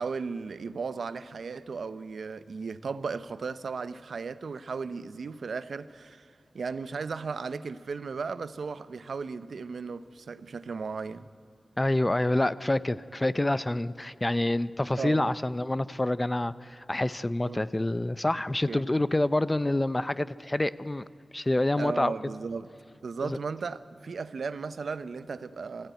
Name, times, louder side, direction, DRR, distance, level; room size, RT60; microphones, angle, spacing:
voice 1, 0.0-11.3 15.0-15.3 17.5-17.6 18.7-18.8 21.8-22.7 23.0-25.9, right 5 dB, 85° right, 0.7 m, -36 dB
voice 2, 11.8-21.0 21.3-22.1 23.2-23.4, left 1 dB, 20° left, 0.5 m, -27 dB
23.0 x 15.5 x 9.2 m
wide cardioid pair, 115°, 0 cm